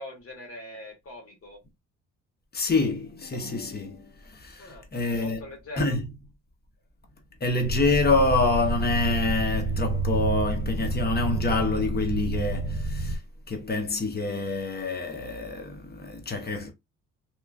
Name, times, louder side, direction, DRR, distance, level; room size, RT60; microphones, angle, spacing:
voice 1, 0.0-1.6 4.6-4.9 5.1-6.0, left 1 dB, 50° left, 1.5 m, -42 dB
voice 2, 2.5-5.4 5.8-6.1 7.4-13.2 13.5-16.7, left 3 dB, 35° left, 0.9 m, -27 dB
sound 1, 7.6-13.2, right 2 dB, 65° right, 0.7 m, -28 dB
2.9 x 2.4 x 2.3 m
cardioid pair, 90°, 30 cm